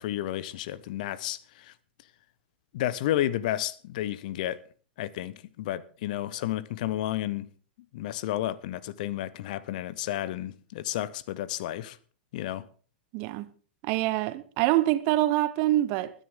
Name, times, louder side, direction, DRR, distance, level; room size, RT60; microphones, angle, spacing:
voice 1, 0.0-1.7 2.7-4.6 5.0-7.5 7.9-12.0 12.3-12.7, left 13 dB, 50° left, 0.8 m, -31 dB
voice 2, 13.1-13.5 13.8-16.1, right 15 dB, 40° right, 1.1 m, -25 dB
21.0 x 10.0 x 3.7 m
figure-of-eight pair, 100°, 5 cm